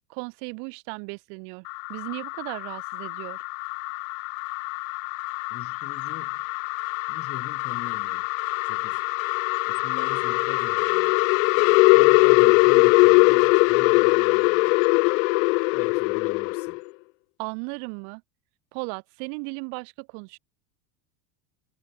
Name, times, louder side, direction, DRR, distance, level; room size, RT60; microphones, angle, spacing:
voice 1, 0.1-3.4 17.4-18.2 18.7-20.4, right 40 dB or more, 50° right, 3.9 m, -36 dB
sound 1, 1.7-16.8, left 28 dB, 55° left, 0.7 m, -22 dB
voice 2, 5.5-6.4 7.1-8.3 8.6-9.0 9.7-11.1 11.9-14.8 15.7-16.8, left 11 dB, 25° left, 3.0 m, -41 dB
supercardioid pair, 155°, 50 cm